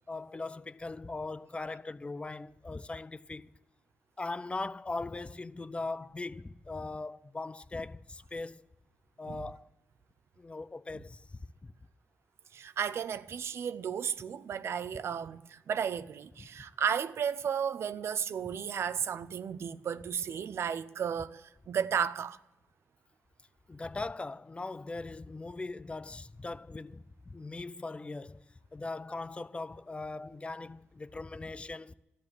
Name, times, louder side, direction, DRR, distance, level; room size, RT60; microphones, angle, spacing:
voice 1, 0.1-3.5 4.2-8.7 9.2-9.7 10.4-11.7 16.4-16.5 23.7-28.4 28.7-31.9, left 3 dB, 25° left, 0.5 m, -40 dB
voice 2, 12.5-22.4, right 7 dB, 70° right, 0.6 m, -34 dB
13.0 x 11.0 x 9.0 m
cardioid pair, 80°, 4 cm